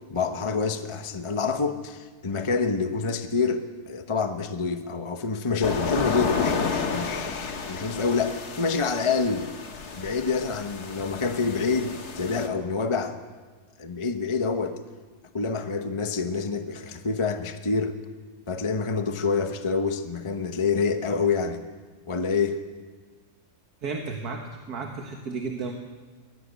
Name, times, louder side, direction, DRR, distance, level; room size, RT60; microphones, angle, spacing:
voice 1, 0.1-9.5 9.9-13.2 13.8-14.8 15.3-17.9 18.5-21.6 22.1-22.6, left 4 dB, 25° left, 7 dB, 0.9 m, -27 dB
sound 1, 5.6-12.5, left 5 dB, 85° left, 2.1 m, -31 dB
voice 2, 23.8-25.7, right 4 dB, 75° right, 3 dB, 2.1 m, -33 dB
23.0 x 17.0 x 8.2 m, 1.4 s
omnidirectional pair, 1.6 m